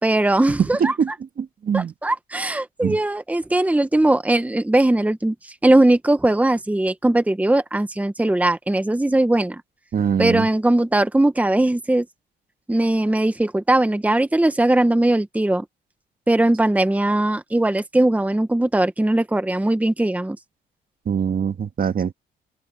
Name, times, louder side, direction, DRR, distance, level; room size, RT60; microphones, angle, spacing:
voice 1, 0.0-0.9 1.7-5.3 5.6-9.6 10.2-12.1 12.7-15.6 16.3-20.4, right 1 dB, 5° right, 1.3 m, -19 dB
voice 2, 0.6-1.1 1.4-1.9 2.8-3.0 9.9-10.5 21.0-22.1, right 7 dB, 45° right, 1.7 m, -22 dB
open air
cardioid pair, 90°, 20 cm